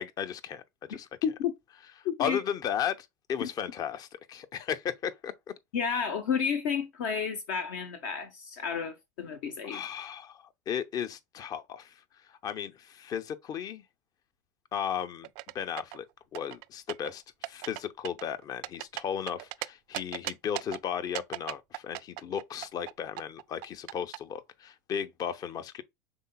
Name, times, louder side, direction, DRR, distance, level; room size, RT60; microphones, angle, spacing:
voice 1, 0.0-1.1 2.2-5.5 9.6-13.8 14.7-15.3 15.5-16.0 16.3-25.8, left 8 dB, 40° left, 0.7 m, -35 dB
voice 2, 2.0-2.4 3.4-3.5 5.7-9.8, left 7 dB, 65° left, 1.0 m, -31 dB
sound 1, 15.2-16.0 16.4-17.1 17.4-17.8 18.1-19.7 19.9-20.8 21.2-22.9 23.2-24.2, right 19 dB, 60° right, 0.4 m, -37 dB
5.4 x 3.9 x 2.2 m
hypercardioid pair, 85°, 10 cm